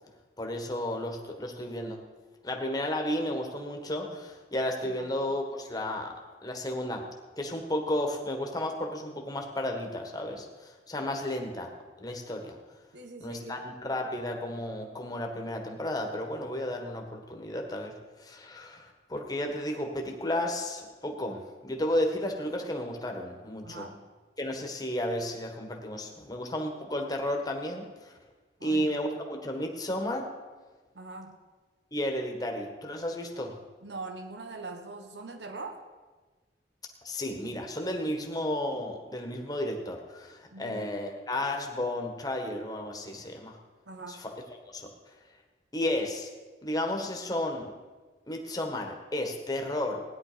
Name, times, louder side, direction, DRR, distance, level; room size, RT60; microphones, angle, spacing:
voice 1, 0.4-2.0 2.4-6.1 6.4-7.1 7.4-11.7 12.0-12.6 13.2-17.9 18.2-23.9 24.4-28.1 28.6-30.3 31.9-33.6 37.0-43.6 44.1-44.3 44.6-44.9 45.7-46.3 46.6-47.7 48.3-50.0, left 1 dB, 20° left, 2 dB, 1.6 m, -33 dB
voice 2, 12.9-13.6 23.6-24.0 28.6-28.9 30.9-31.4 33.8-35.8 40.5-40.8 43.9-44.2, right 3 dB, 75° right, 6 dB, 1.4 m, -42 dB
17.0 x 10.5 x 5.2 m, 1.3 s
head